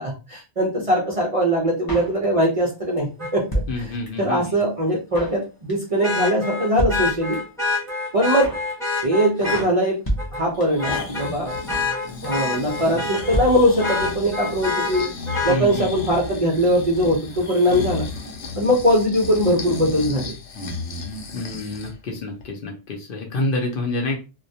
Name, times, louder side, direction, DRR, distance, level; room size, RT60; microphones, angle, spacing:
voice 1, 0.0-3.1 3.3-3.4 3.8-3.9 4.2-7.4 8.1-8.5 9.0-10.0 10.3-11.5 12.2-15.1 15.4-18.0 18.5-20.3, equal, 45° right, -2 dB, 0.4 m, -21 dB
Drum kit, 1.9-2.7 3.0-3.1 3.2-4.3 4.6-4.7 4.9-5.4 5.7-6.0 6.2-6.3 6.5-6.6 6.8-7.6 7.9-8.0 8.2-8.7 9.0-9.3 9.5-9.6 9.8-9.9 10.1-10.9 11.2-11.3 11.4-12.0 12.2-12.5 12.8-12.9 13.1-13.2 13.3-14.2 14.4-14.5 14.7-14.8, right 1 dB, 25° left, 0.5 m, -29 dB
Vehicle horn car horn honking, 3.2-3.3 6.0-9.7 10.2-10.4 10.8-13.4 13.8-15.6 17.4-17.5, left 3 dB, 5° left, 0.8 m, -26 dB
voice 2, 3.7-4.6 15.5-15.9 21.3-24.2, left 2 dB, 60° left, 2 dB, 0.7 m, -28 dB
Breathing, 10.5-22.0 22.4-22.5, left 3 dB, 90° left, 0.9 m, -34 dB
2.2 x 2.1 x 2.6 m, 0.31 s
omnidirectional pair, 1.2 m